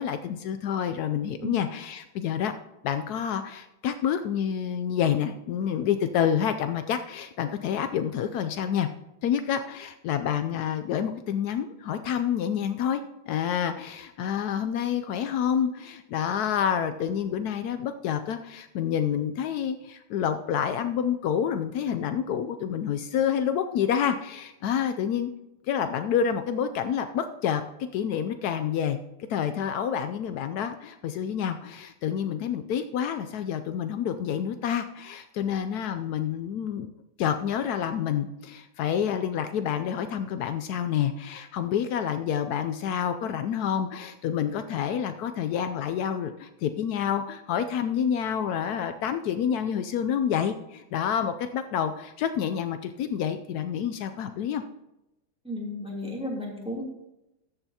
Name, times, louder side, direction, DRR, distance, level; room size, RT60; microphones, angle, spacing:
voice 1, 0.0-2.5 2.8-8.9 9.2-13.0 13.3-25.3 25.7-27.6 27.9-29.0 29.3-36.9 37.2-54.6, left 8 dB, 90° left, 9 dB, 0.8 m, -28 dB
voice 2, 55.4-56.8, left 1 dB, 5° right, -5 dB, 2.7 m, -33 dB
13.5 x 8.0 x 2.8 m, 0.92 s
omnidirectional pair, 2.2 m